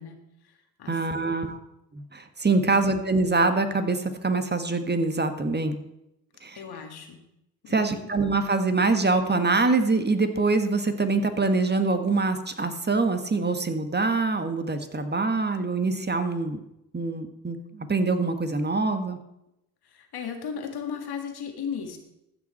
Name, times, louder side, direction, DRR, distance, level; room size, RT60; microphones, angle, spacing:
voice 1, 0.0-1.6 2.6-2.9 6.6-7.2 7.6-8.1 19.8-22.0, left 6 dB, 65° left, 5 dB, 1.9 m, -37 dB
voice 2, 0.9-1.6 1.9-5.8 6.4-6.6 7.7-16.6 16.9-19.2, right 3 dB, 25° right, 8 dB, 1.5 m, -24 dB
15.0 x 6.1 x 4.4 m, 0.85 s
hypercardioid pair, 50°, 41 cm